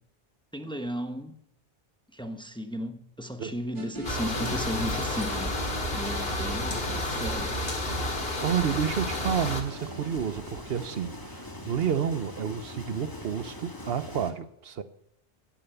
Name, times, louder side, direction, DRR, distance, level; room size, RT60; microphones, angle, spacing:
voice 1, 0.5-1.4 2.1-5.6 5.9-7.6, equal, 5° left, 1.0 m, -35 dB
sound 1, 3.7-11.8, right 2 dB, 55° right, 2.3 m, -41 dB
sound 2, 4.0-9.6, left 1 dB, 70° left, 2.2 m, -31 dB
sound 3, 7.8-14.3, left 2 dB, 20° left, 1.6 m, -42 dB
voice 2, 8.4-14.8, right 8 dB, 70° right, 1.0 m, -30 dB
16.0 x 8.9 x 7.0 m
omnidirectional pair, 1.0 m